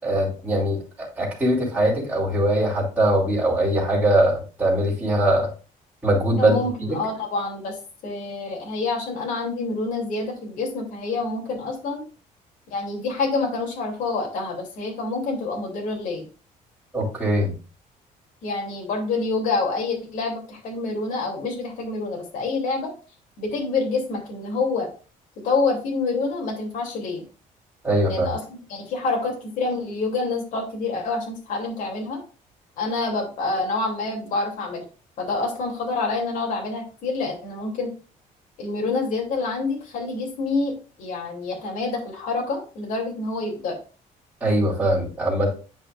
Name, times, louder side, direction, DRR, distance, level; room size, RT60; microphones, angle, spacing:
voice 1, 0.0-5.5 6.0-7.0 16.9-17.5 27.8-28.3 44.4-45.5, right 1 dB, 10° right, -11 dB, 3.0 m, -21 dB
voice 2, 6.4-7.8 8.0-12.0 12.7-16.3 18.4-22.9 23.4-24.9 25.4-27.2 28.1-28.4 28.7-32.2 32.8-34.8 35.2-37.9 38.6-43.7, left 3 dB, 65° left, -1 dB, 2.9 m, -27 dB
9.9 x 5.5 x 2.5 m, 0.35 s
cardioid pair, 175°, 15 cm